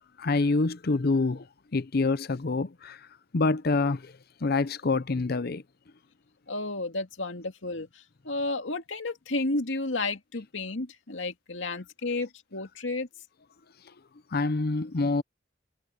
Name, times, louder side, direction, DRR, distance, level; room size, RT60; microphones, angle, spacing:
voice 1, 0.2-1.5 1.7-3.0 3.3-4.1 4.4-5.6 14.3-15.2, left 3 dB, 55° left, 0.7 m, -26 dB
voice 2, 6.5-13.1, left 2 dB, 85° left, 2.3 m, -32 dB
head